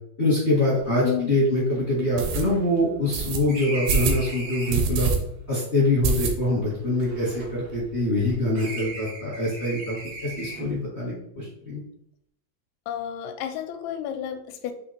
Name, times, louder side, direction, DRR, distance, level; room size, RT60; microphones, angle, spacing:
voice 1, 0.2-5.1 5.5-11.8, left 1 dB, 60° left, -7 dB, 0.6 m, -24 dB
sound 1, 0.8-0.9 1.3-1.4 2.2-2.4 3.1-3.4 3.9-4.2 4.7-5.2 5.5-5.6 6.0-6.7 7.0-7.1 7.4-7.5 7.7-8.4, right 5 dB, 75° right, 2.1 m, -25 dB
sound 2, 0.8-0.9 1.2-1.3 1.7-5.0 5.8-8.2 8.5-10.9, right 2 dB, 90° right, 1.3 m, -39 dB
voice 2, 12.9-14.7, left 10 dB, 85° left, 8 dB, 2.8 m, -31 dB
8.4 x 3.0 x 4.4 m, 0.73 s
omnidirectional pair, 5.3 m